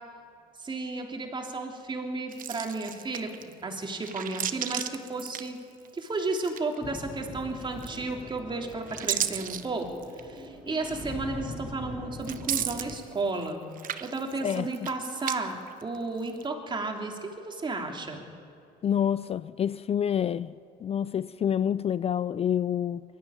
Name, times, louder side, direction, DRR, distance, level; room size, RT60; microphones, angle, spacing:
voice 1, 0.6-5.6 5.9-9.9 10.2-13.7 14.0-18.3, right 3 dB, 30° right, 3.1 m, -33 dB
sound 1, 2.3-3.5 4.0-6.0 6.3-7.0 7.8-8.3 8.7-10.3 10.9-11.0 12.2-13.5 13.7-15.4 15.7-16.4, right 10 dB, 55° right, 1.0 m, -34 dB
sound 2, 6.8-13.0, left 2 dB, 10° left, 3.5 m, -42 dB
voice 2, 18.8-20.5 20.8-23.0, left 9 dB, 35° left, 0.4 m, -27 dB
22.0 x 13.0 x 9.6 m
cardioid pair, 110°, 17 cm